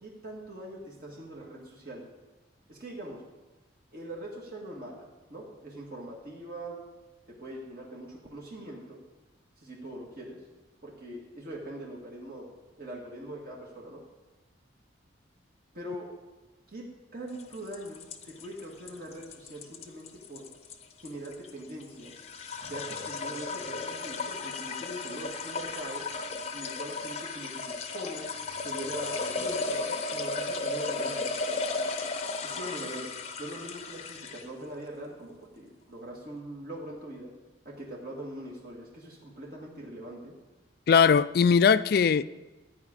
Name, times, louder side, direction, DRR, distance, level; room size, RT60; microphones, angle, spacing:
voice 1, 0.0-2.0 2.7-3.2 3.9-6.8 7.4-9.0 9.6-10.4 10.8-12.5 12.8-14.0 15.7-16.1 16.7-16.8 17.1-20.4 21.0-22.1 22.7-26.1 26.5-28.3 28.6-29.8 30.1-31.3 32.4-33.1 33.4-37.3 37.7-40.4, right 1 dB, 50° right, -3 dB, 1.9 m, -42 dB
sound 1, 17.4-34.6, left 3 dB, 35° left, 0.7 m, -35 dB
voice 2, 40.9-42.2, left 6 dB, 50° left, 16 dB, 0.3 m, -20 dB
13.5 x 4.9 x 8.7 m, 1.1 s
head